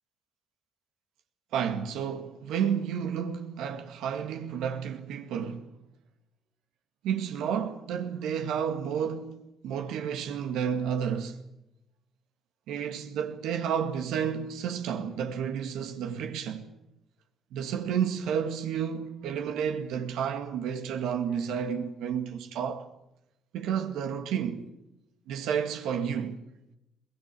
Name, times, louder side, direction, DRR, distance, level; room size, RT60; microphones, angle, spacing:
voice 1, 1.5-5.7 7.0-11.4 12.7-16.7 17.5-22.9 23.5-24.7 25.3-26.4, right 8 dB, 85° right, 2.0 m, -31 dB
22.5 x 19.0 x 8.5 m
cardioid pair, 80°, 0 cm